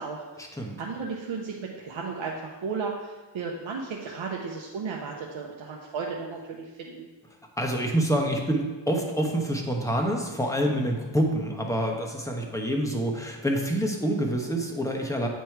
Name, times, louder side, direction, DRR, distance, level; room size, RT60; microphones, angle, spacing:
voice 1, 0.0-0.5 0.8-7.1, right 5 dB, 85° right, -1 dB, 0.8 m, -34 dB
voice 2, 7.6-15.3, right 1 dB, 5° left, 1 dB, 1.1 m, -27 dB
9.1 x 3.1 x 4.5 m, 1.3 s
cardioid pair, 60°, 45 cm